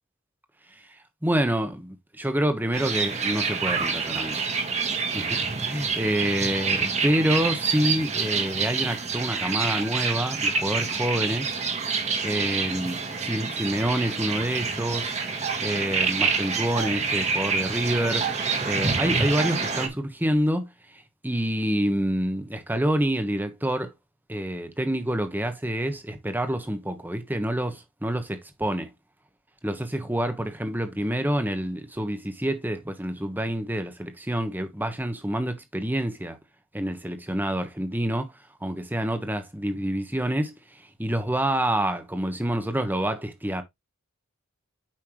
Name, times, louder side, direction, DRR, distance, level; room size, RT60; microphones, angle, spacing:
voice 1, 1.2-4.4 5.1-11.5 12.2-15.2 15.6-18.2 18.6-20.7 21.2-23.9 24.3-28.9 29.6-36.4 36.7-38.3 38.6-40.5 41.0-43.6, right 1 dB, 10° right, 1.2 m, -27 dB
sound 1, 2.7-19.9, right 5 dB, 30° right, 1.8 m, -27 dB
8.7 x 5.7 x 3.0 m
head